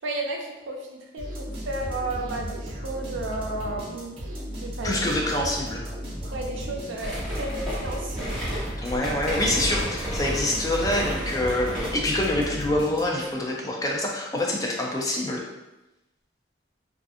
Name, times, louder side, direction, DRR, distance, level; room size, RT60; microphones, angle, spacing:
voice 1, 0.0-4.2 4.6-5.0 5.4-5.5 6.3-8.4, right 2 dB, 85° right, 1 dB, 0.5 m, -33 dB
sound 1, 1.2-13.4, equal, 30° right, 0.8 m, -35 dB
voice 2, 4.8-5.8 8.8-15.4, left 1 dB, 20° left, -1 dB, 0.3 m, -26 dB
sound 2, 7.0-12.1, equal, 5° left, 0.9 m, -32 dB
2.4 x 2.4 x 2.5 m, 1.0 s
head